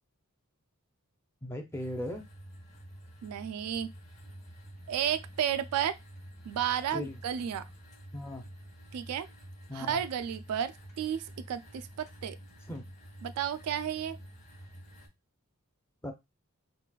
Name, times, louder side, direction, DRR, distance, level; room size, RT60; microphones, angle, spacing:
voice 1, 1.4-2.2 6.9-7.2 8.1-8.4 9.7-10.0 12.7-12.8 16.0-16.1, left 1 dB, 10° left, 0.5 m, -37 dB
sound 1, 1.7-15.1, right 1 dB, 35° left, 0.9 m, -49 dB
voice 2, 3.2-3.9 4.9-6.0 6.5-7.6 8.9-9.3 9.7-10.7 11.0-12.4 13.2-14.2, right 9 dB, 75° right, 0.3 m, -32 dB
3.9 x 2.2 x 2.3 m
head